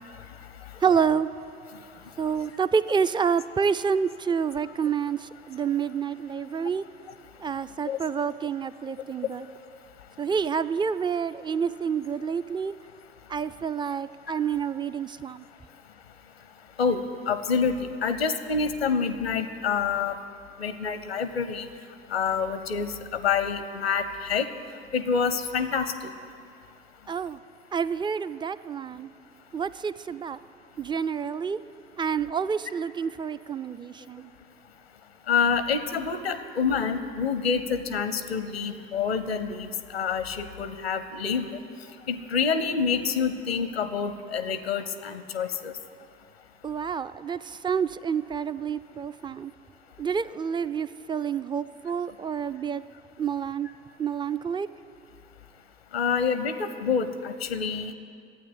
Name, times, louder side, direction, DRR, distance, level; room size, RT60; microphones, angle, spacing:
voice 1, 0.8-1.7 2.2-6.9 7.4-9.5 10.2-12.8 13.3-15.5 27.1-27.4 27.7-29.1 29.5-30.4 30.8-31.7 32.0-34.3 46.6-49.5 50.0-52.8 53.2-54.7, right 6 dB, 15° right, 0.4 m, -28 dB
voice 2, 16.8-20.2 20.6-21.7 22.1-24.5 24.9-26.1 35.3-41.6 42.1-45.7 55.9-57.9, left 6 dB, 85° left, 0.7 m, -27 dB
12.0 x 9.0 x 9.8 m
figure-of-eight pair, 50°, 30 cm